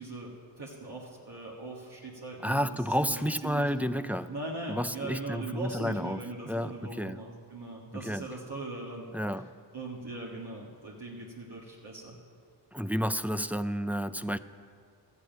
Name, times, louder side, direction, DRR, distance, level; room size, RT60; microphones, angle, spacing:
voice 1, 0.0-3.7 4.0-9.1 9.3-12.2, right 2 dB, 65° right, -4 dB, 1.8 m, -41 dB
voice 2, 2.4-4.3 4.7-6.2 6.5-7.2 7.9-8.3 9.1-9.5 12.7-14.4, equal, 5° right, 10 dB, 0.4 m, -31 dB
13.5 x 8.0 x 9.1 m, 2.1 s
wide cardioid pair, 50°, 43 cm